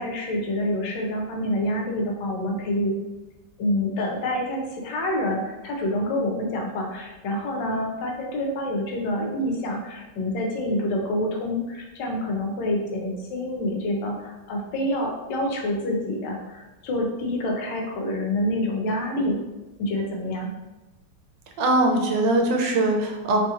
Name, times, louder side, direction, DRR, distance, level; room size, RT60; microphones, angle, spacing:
voice 1, 0.0-2.9 3.6-19.4 19.8-20.5, left 1 dB, 80° left, 1 dB, 1.3 m, -27 dB
voice 2, 21.6-23.4, right 2 dB, 85° right, 2 dB, 1.3 m, -21 dB
3.2 x 2.4 x 2.7 m, 1.0 s
omnidirectional pair, 1.9 m